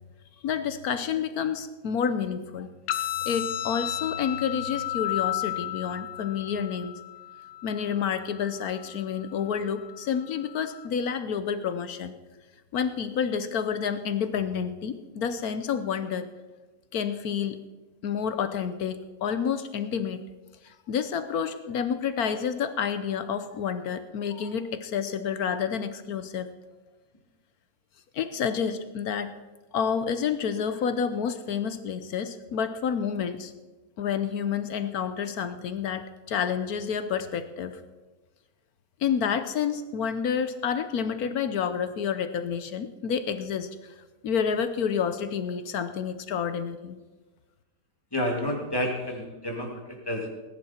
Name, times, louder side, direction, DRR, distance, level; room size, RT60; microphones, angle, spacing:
voice 1, 0.4-2.7 3.2-7.0 7.6-12.1 12.7-16.3 16.9-17.6 18.0-20.2 20.6-26.5 28.1-29.3 29.7-33.5 34.0-37.8 39.0-43.9 44.2-47.0, left 7 dB, 65° left, 11 dB, 1.1 m, -29 dB
sound 1, 2.9-10.9, left 13 dB, 80° left, 1.5 m, -34 dB
voice 2, 48.1-50.3, left 1 dB, 10° left, 0 dB, 2.4 m, -30 dB
19.5 x 10.5 x 4.4 m, 1.2 s
omnidirectional pair, 2.1 m